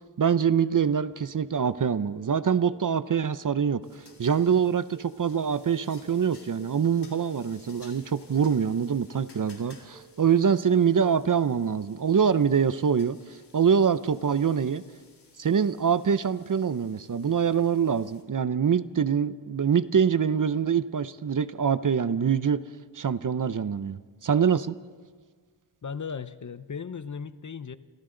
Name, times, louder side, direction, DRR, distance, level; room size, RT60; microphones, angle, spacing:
voice 1, 0.2-3.8 4.2-14.8 15.4-22.6 22.9-24.7, right 7 dB, 45° right, 14 dB, 0.7 m, -24 dB
sound 1, 2.1-11.4, right 3 dB, 15° right, 2.3 m, -55 dB
sound 2, 3.8-18.2, left 3 dB, 60° left, 3.6 m, -57 dB
voice 2, 25.8-27.8, left 6 dB, 40° left, 13 dB, 0.8 m, -36 dB
29.0 x 27.0 x 3.9 m, 1.5 s
wide cardioid pair, 100°, 46 cm